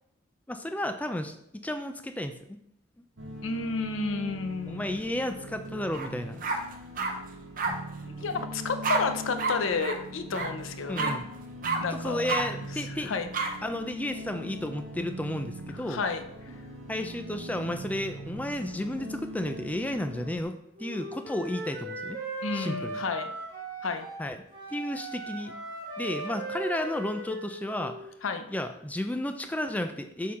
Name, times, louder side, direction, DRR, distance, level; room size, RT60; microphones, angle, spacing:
voice 1, 0.5-2.6 4.7-6.4 10.9-11.2 11.9-13.1 13.6-16.0 16.9-22.2 22.5-23.0 24.2-24.4 24.7-25.5 26.0-28.1 28.5-30.3, left 1 dB, 10° left, 7 dB, 0.4 m, -32 dB
sound 1, 3.2-20.4, equal, 70° right, 1.1 m, -41 dB
voice 2, 3.4-4.8 8.0-11.1 11.8-12.4 12.9-13.3 15.9-16.2 22.4-23.3 23.8-24.1 28.2-28.4, left 4 dB, 80° left, 8 dB, 0.6 m, -31 dB
sound 2, 5.9-6.1 6.4-7.1 7.6-7.7 8.8-9.0 9.4-9.5 9.8-10.0 10.3-10.5 11.0-11.1 11.6-11.8 12.3-12.4 13.3-13.5, right 4 dB, 45° right, 0.7 m, -28 dB
Wind instrument woodwind instrument, 20.8-24.2 24.5-28.1, right 2 dB, 20° right, 1.7 m, -38 dB
6.4 x 3.8 x 4.2 m, 0.74 s
head